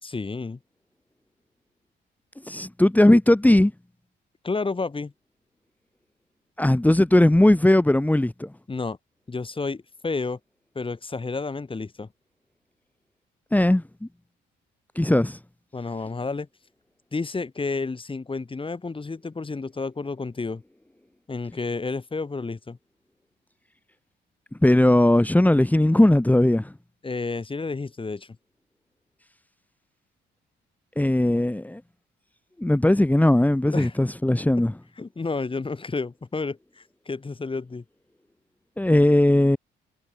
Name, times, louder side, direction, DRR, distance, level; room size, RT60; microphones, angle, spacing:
voice 1, 0.0-0.6 4.4-5.1 8.7-9.0 9.3-10.4 10.7-12.1 15.7-16.5 17.1-20.6 21.3-22.8 27.0-28.4 33.7-34.0 35.0-37.8, left 3 dB, 25° left, 6.8 m, -31 dB
voice 2, 2.5-3.7 6.6-8.5 13.5-13.8 15.0-15.4 24.6-26.7 31.0-31.8 32.6-34.7 38.8-39.6, left 1 dB, 10° left, 3.4 m, -18 dB
cardioid pair, 90°, 20 cm